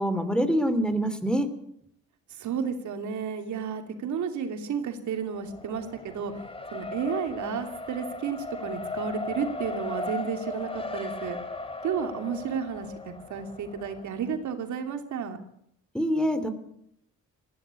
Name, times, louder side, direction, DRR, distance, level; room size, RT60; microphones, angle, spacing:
voice 1, 0.0-1.5 15.9-16.5, equal, 5° left, 11 dB, 3.0 m, -25 dB
voice 2, 2.3-6.3 6.7-11.4 11.8-15.4, right 7 dB, 75° right, 6 dB, 2.9 m, -32 dB
Race car auto racing, 5.3-14.4, left 2 dB, 20° left, 2.8 m, -37 dB
19.5 x 16.0 x 8.4 m, 0.72 s
cardioid pair, 90°, 30 cm